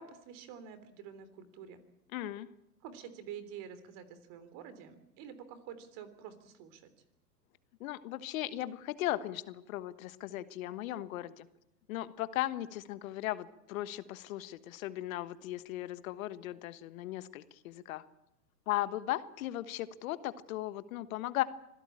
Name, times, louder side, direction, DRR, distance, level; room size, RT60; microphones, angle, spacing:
voice 1, 0.0-1.8 2.8-6.9, right 8 dB, 40° right, 12 dB, 3.6 m, -48 dB
voice 2, 2.1-2.5 7.8-11.5 11.9-18.0 18.7-21.4, left 15 dB, 55° left, 13 dB, 1.4 m, -37 dB
25.5 x 16.5 x 8.8 m, 0.86 s
hypercardioid pair, 120°, 49 cm